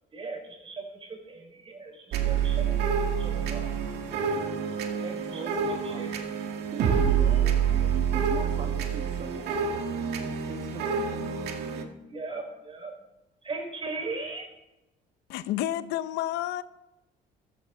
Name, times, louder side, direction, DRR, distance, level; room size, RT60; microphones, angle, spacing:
voice 1, 0.1-2.9 3.2-3.7 5.0-6.3 7.2-8.4 12.1-12.9 13.4-14.5, right 3 dB, 35° right, 4.9 m, -39 dB
sound 1, 2.1-11.8, right 7 dB, 75° right, 2.0 m, -27 dB
voice 2, 5.1-6.1 6.7-7.4 8.1-9.8 10.2-11.2, right 5 dB, 50° right, 1.7 m, -41 dB
voice 3, 15.3-16.6, left 13 dB, 90° left, 0.8 m, -30 dB
15.0 x 14.0 x 3.9 m
cardioid pair, 110°, 17 cm